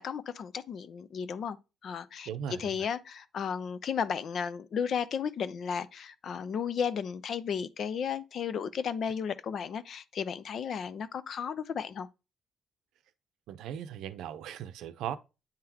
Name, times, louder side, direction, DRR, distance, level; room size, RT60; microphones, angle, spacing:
voice 1, 0.0-1.6 1.8-12.1, left 7 dB, 60° left, 0.5 m, -34 dB
voice 2, 2.3-2.9 13.5-15.2, right 9 dB, 85° right, 0.6 m, -38 dB
8.7 x 3.8 x 2.9 m
cardioid pair, 90°, 0 cm